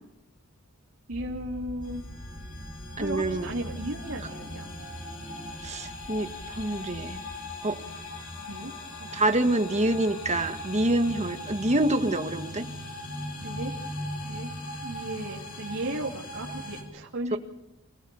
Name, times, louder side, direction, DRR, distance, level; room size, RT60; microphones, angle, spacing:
sound 1, 1.1-7.9, equal, 65° left, 4.0 m, -45 dB
voice 1, 1.1-2.0 3.0-4.7 8.4-9.3 13.4-13.7 14.2-14.6 14.8-17.4, right 1 dB, 70° right, -4 dB, 2.9 m, -35 dB
sound 2, 1.8-16.8, left 1 dB, 85° left, 6.2 m, -39 dB
voice 2, 3.0-3.5 5.6-7.2 7.6-7.8 9.1-12.6 17.3-17.4, right 1 dB, 30° right, 7 dB, 1.6 m, -26 dB
27.5 x 19.0 x 7.0 m, 0.89 s
head